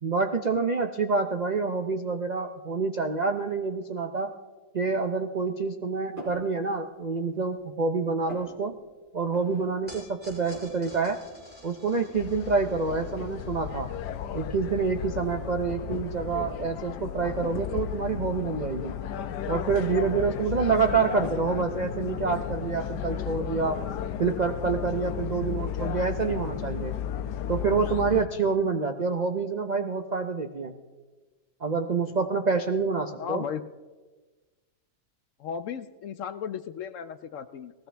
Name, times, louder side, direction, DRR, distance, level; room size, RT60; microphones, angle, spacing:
voice 1, 0.0-4.3 4.7-8.7 9.1-11.2 11.6-13.9 14.3-19.0 19.5-23.8 24.2-26.9 27.5-30.7 31.6-33.5, right 4 dB, 60° right, 5 dB, 0.4 m, -27 dB
sound 1, 6.2-6.5 7.0-7.7 7.9-8.5 9.3-9.7 10.0-10.1 10.3-10.9 11.3-11.4 11.9-12.4 12.9-13.2 14.0-14.1 14.6-16.0 16.4-16.6 17.4-17.7 18.7-19.4 19.7-20.7 21.2-21.5, equal, 30° right, 4.4 m, -43 dB
sound 2, 9.9-16.3, equal, 5° right, 6.2 m, -52 dB
sound 3, 12.1-28.3, left 9 dB, 90° left, 1.2 m, -34 dB
voice 2, 33.2-33.6 35.4-37.7, left 8 dB, 70° left, 11 dB, 0.8 m, -35 dB
19.0 x 16.0 x 3.4 m, 1.3 s
omnidirectional pair, 1.7 m